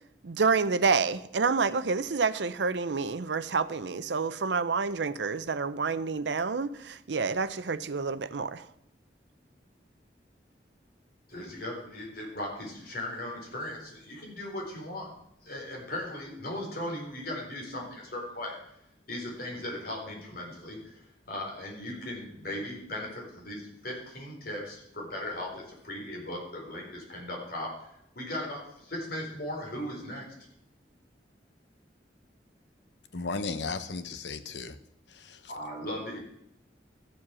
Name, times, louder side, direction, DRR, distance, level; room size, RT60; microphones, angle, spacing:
voice 1, 0.2-8.7, right 4 dB, 80° right, 0.6 m, -28 dB
voice 2, 11.3-15.1 15.4-18.6 19.1-21.0 21.3-27.9 28.2-30.3 35.5-36.2, left 1 dB, 55° left, 4.2 m, -38 dB
voice 3, 33.1-34.8 35.1-35.5, left 4 dB, 85° left, 0.9 m, -35 dB
14.0 x 7.5 x 6.2 m
head